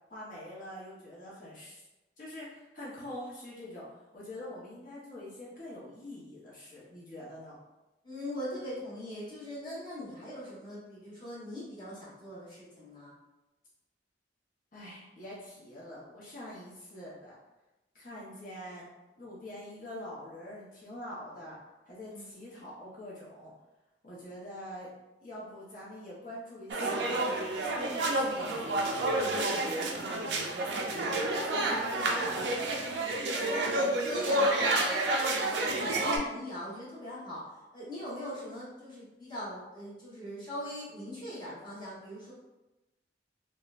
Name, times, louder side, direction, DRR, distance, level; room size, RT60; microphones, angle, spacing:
voice 1, 0.1-1.9 2.2-3.8 4.1-7.6 14.7-17.3 17.9-18.9 19.2-21.6 21.9-23.5 24.0-24.9 25.2-28.7 29.1-31.1 31.5-32.5, left 1 dB, 50° left, -7 dB, 0.8 m, -45 dB
voice 2, 8.0-13.1 22.1-22.4 33.3-35.3 35.5-37.4 37.7-42.3, left 1 dB, 25° left, -9 dB, 1.1 m, -41 dB
sound 1, 26.7-36.2, right 2 dB, 70° right, 0.4 m, -29 dB
3.7 x 2.0 x 2.4 m, 1.0 s
head